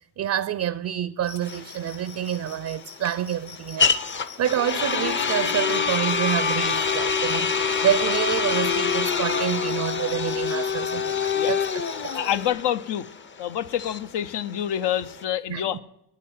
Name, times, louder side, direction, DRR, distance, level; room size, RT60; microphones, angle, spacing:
voice 1, 0.2-3.9 4.4-7.5 7.8-11.6 12.0-12.1 15.5-15.8, right 10 dB, 45° right, 0.4 m, -27 dB
sound 1, 1.2-12.5, left 5 dB, 45° left, 1.1 m, -45 dB
sound 2, 1.4-15.2, left 5 dB, 30° left, 0.6 m, -26 dB
voice 2, 12.1-13.1 13.4-15.8, left 10 dB, 75° left, 0.8 m, -27 dB
9.4 x 9.2 x 9.1 m
cardioid pair, 100°, 41 cm